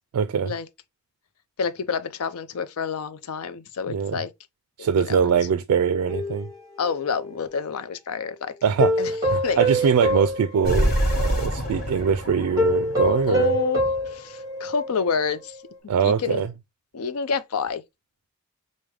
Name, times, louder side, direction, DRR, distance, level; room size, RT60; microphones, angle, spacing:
voice 1, 0.1-0.5 3.9-4.2 4.8-6.5 8.6-13.5 15.9-16.5, right 7 dB, 85° right, 0.3 m, -23 dB
voice 2, 1.6-4.3 4.8-5.3 6.8-8.5 9.0-9.1 9.4-9.6 13.3-13.8 14.1-15.6 16.0-16.4 16.9-17.8, left 6 dB, 75° left, 0.5 m, -28 dB
sound 1, 6.1-7.7 8.8-11.4 11.8-11.9 12.6-15.1 15.5-15.6, equal, 15° right, 1.4 m, -26 dB
sound 2, 10.6-14.1, equal, 45° left, 1.2 m, -26 dB
4.8 x 2.1 x 3.2 m
head